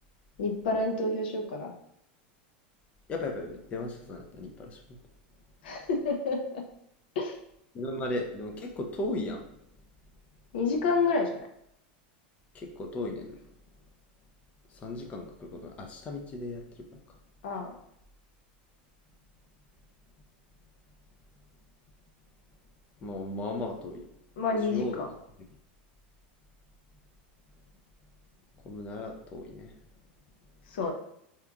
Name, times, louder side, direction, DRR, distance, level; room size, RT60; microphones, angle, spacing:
voice 1, 0.4-1.7 5.6-6.4 7.2-7.4 10.5-11.4 17.4-17.7 24.4-25.1 30.7-30.9, left 3 dB, 85° left, 3 dB, 0.5 m, -28 dB
voice 2, 3.1-5.0 7.7-9.4 12.5-13.4 14.7-17.2 23.0-24.0 24.7-25.0 28.6-29.7, left 2 dB, 25° left, 2 dB, 0.4 m, -36 dB
2.8 x 2.4 x 2.3 m, 0.76 s
supercardioid pair, 130°, 5 cm